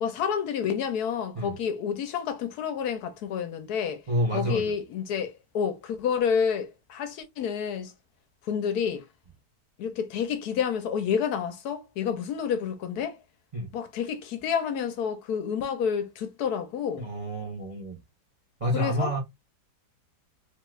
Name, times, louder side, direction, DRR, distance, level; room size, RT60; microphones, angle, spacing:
voice 1, 0.0-4.0 4.3-7.9 8.4-9.0 9.8-13.2 13.7-17.1 18.7-19.1, left 7 dB, 70° left, 1.1 m, -29 dB
voice 2, 4.1-4.7 13.5-13.7 17.0-18.0 18.6-19.2, equal, 45° right, 0.4 m, -28 dB
3.0 x 2.3 x 3.0 m
omnidirectional pair, 1.8 m